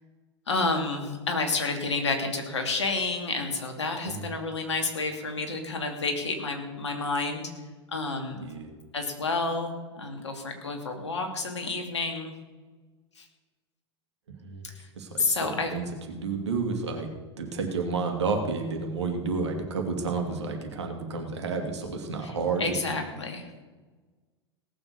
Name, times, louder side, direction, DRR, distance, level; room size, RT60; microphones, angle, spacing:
voice 1, 0.5-7.5 7.9-8.5 8.9-12.3 13.2-13.3 14.6-14.9 15.2-15.7 22.2-22.3 22.6-23.4, left 3 dB, 80° left, 4 dB, 2.4 m, -30 dB
voice 2, 8.3-8.8 14.3-14.6 15.0-17.1 17.4-22.8, right 4 dB, 75° right, 3 dB, 2.5 m, -31 dB
17.5 x 7.2 x 6.9 m, 1.3 s
figure-of-eight pair, 95°, 15 cm